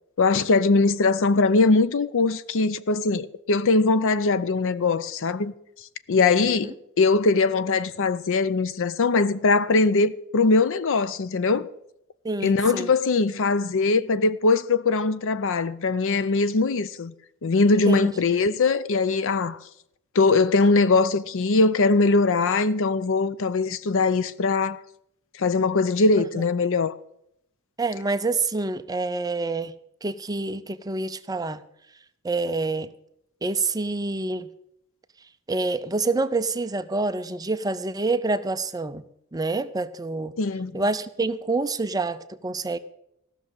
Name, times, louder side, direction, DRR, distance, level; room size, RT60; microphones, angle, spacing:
voice 1, 0.2-5.5 6.1-11.7 12.4-17.1 17.4-19.6 20.1-24.8 25.4-27.0 40.4-40.8, left 3 dB, 65° left, 0.6 m, -21 dB
voice 2, 12.2-12.9 17.9-18.1 26.2-26.4 27.8-29.7 30.0-31.6 32.2-32.9 33.4-34.5 35.5-39.0 39.3-40.3 40.7-42.8, right 3 dB, 15° right, 0.5 m, -27 dB
15.0 x 6.4 x 8.8 m
head